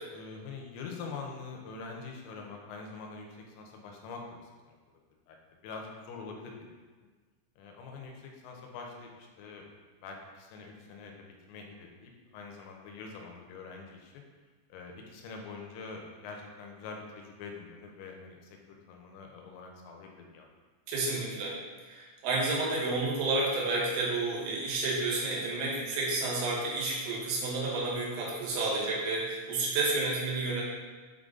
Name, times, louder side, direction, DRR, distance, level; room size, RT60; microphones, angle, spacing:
voice 1, 0.1-3.3 3.6-4.8 5.3-5.4 5.6-6.6 7.6-9.7 10.0-14.2 14.7-18.4 18.7-20.5, left 4 dB, 85° left, 1 dB, 3.4 m, -44 dB
voice 2, 20.9-21.6 21.8-30.6, right 3 dB, 85° right, -4 dB, 4.1 m, -30 dB
8.0 x 3.8 x 3.7 m, 1.4 s
omnidirectional pair, 5.9 m